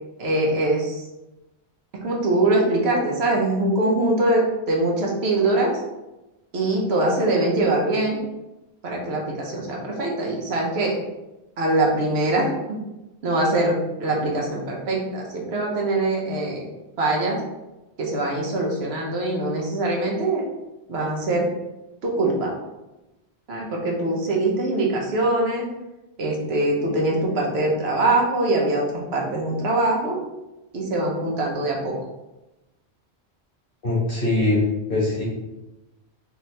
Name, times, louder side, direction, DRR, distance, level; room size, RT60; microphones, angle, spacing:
voice 1, 0.2-1.0 1.9-5.7 6.5-8.2 8.8-11.0 11.6-12.8 13.2-16.7 17.0-17.4 18.0-20.4 20.9-21.5 22.0-22.6 23.5-25.7 26.2-30.2 30.7-31.9, right 2 dB, 70° right, -1 dB, 1.0 m, -23 dB
voice 2, 33.8-34.6 34.9-35.2, left 2 dB, 55° left, -7 dB, 1.7 m, -21 dB
3.5 x 2.9 x 3.2 m, 1.0 s
omnidirectional pair, 1.1 m